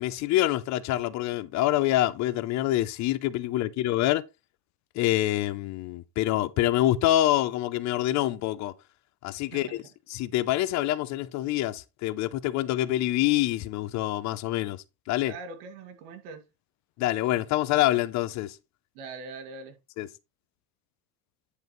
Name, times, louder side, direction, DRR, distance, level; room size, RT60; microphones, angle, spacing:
voice 1, 0.0-4.2 4.9-8.7 9.2-9.8 10.1-15.3 17.0-18.6 20.0-20.1, left 15 dB, 40° left, 0.5 m, -26 dB
voice 2, 15.2-16.4 18.9-19.8, right 4 dB, 80° right, 2.2 m, -42 dB
10.5 x 4.8 x 3.0 m
cardioid pair, 145°, 43 cm